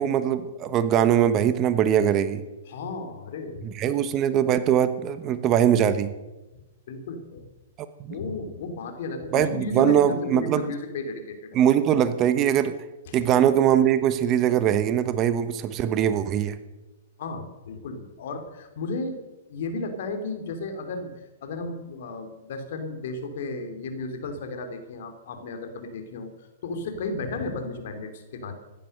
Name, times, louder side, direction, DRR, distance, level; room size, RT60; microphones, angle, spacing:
voice 1, 0.0-2.4 3.8-6.1 9.3-10.7 11.5-12.7 13.1-16.6, right 9 dB, 35° right, 12 dB, 1.1 m, -21 dB
voice 2, 2.7-4.0 6.9-7.5 8.1-11.6 13.1-13.3 17.2-19.2 19.5-28.5, left 3 dB, 60° left, 6 dB, 2.9 m, -34 dB
15.0 x 11.0 x 6.7 m, 1.1 s
hypercardioid pair, 115°, 0 cm